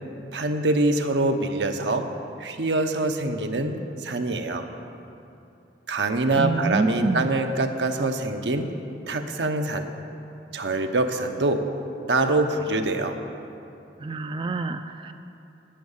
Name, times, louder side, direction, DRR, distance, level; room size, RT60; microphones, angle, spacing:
voice 1, 0.3-2.1 2.4-4.7 5.9-8.7 9.1-9.9 10.5-11.6 12.1-13.2, right 2 dB, 80° right, 5 dB, 0.9 m, -24 dB
voice 2, 6.4-7.3 14.0-15.1, right 3 dB, 30° right, 8 dB, 0.4 m, -27 dB
10.5 x 10.5 x 7.2 m, 2.8 s
head